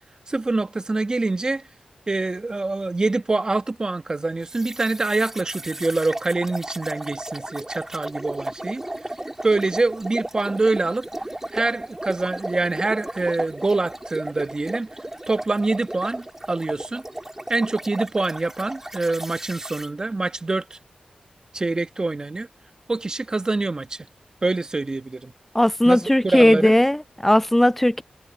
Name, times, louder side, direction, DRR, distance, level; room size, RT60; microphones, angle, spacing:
voice 1, 0.3-1.6 2.1-8.8 9.4-11.1 11.5-14.9 15.3-17.0 17.5-20.8 21.5-22.5 22.9-24.1 24.4-25.3 25.8-26.7, right 3 dB, 30° right, 1.3 m, -25 dB
sound 1, 4.5-19.9, right 1 dB, 15° right, 3.6 m, -35 dB
voice 2, 25.5-28.0, left 1 dB, 10° left, 0.3 m, -17 dB
wide cardioid pair, 85°, 2 cm